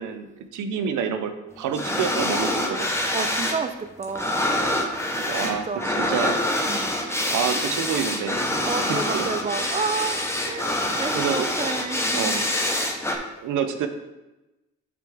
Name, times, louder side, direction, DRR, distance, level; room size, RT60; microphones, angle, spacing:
voice 1, 0.0-2.9 5.2-6.4 7.3-9.3 11.1-11.5 12.1-12.4 13.4-13.9, right 7 dB, 80° right, 8 dB, 0.8 m, -28 dB
sound 1, 1.7-3.6 3.9-13.2, left 1 dB, 10° left, 1.0 m, -26 dB
voice 2, 2.6-2.9 3.1-4.5 5.4-6.2 6.7-7.0 7.5-7.7 8.7-12.5, right 5 dB, 25° right, 9 dB, 0.6 m, -31 dB
7.6 x 5.3 x 3.5 m, 1.0 s
cardioid pair, 90°, 30 cm